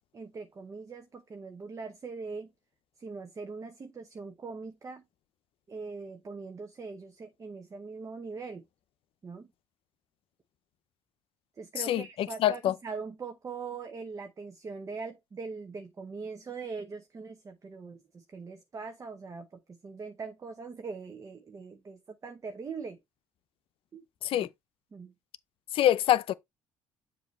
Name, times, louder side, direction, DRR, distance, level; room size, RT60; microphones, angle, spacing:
voice 1, 0.1-2.5 3.0-5.0 5.7-8.6 9.2-9.5 11.6-23.0 23.9-24.0 24.3-24.5 24.9-25.1, right 4 dB, 30° right, 0.8 m, -41 dB
voice 2, 11.9-12.7 24.2-24.5 25.7-26.3, left 12 dB, 65° left, 0.6 m, -25 dB
7.3 x 2.8 x 5.2 m
cardioid pair, 90°, 10 cm